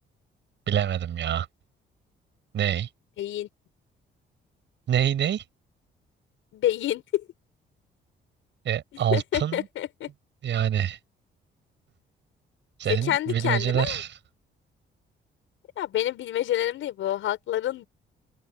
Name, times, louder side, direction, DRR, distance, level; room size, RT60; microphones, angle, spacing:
voice 1, 0.7-1.5 2.5-2.9 4.9-5.4 8.6-9.7 10.4-11.0 12.8-14.2, right 10 dB, 65° right, 7.3 m, -26 dB
voice 2, 3.2-3.5 6.5-7.2 9.1-10.1 12.9-13.9 15.8-17.9, left 13 dB, 80° left, 6.3 m, -28 dB
open air
cardioid pair, 90°, 20 cm